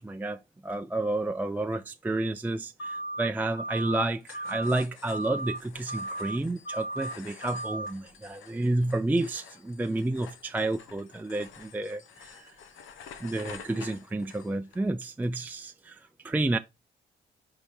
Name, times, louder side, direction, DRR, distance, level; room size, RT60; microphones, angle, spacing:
voice 1, 0.0-12.5 13.2-16.6, right 2 dB, 10° right, 0.4 m, -30 dB
sound 1, 2.8-3.3 3.6-4.0 4.3-4.8 5.1-5.6 5.9-6.4 6.6-7.1 7.4-7.9, right 1 dB, 55° left, 1.5 m, -35 dB
sound 2, 4.2-14.8, left 7 dB, 85° left, 1.0 m, -49 dB
4.8 x 4.2 x 5.2 m
cardioid pair, 90°, 20 cm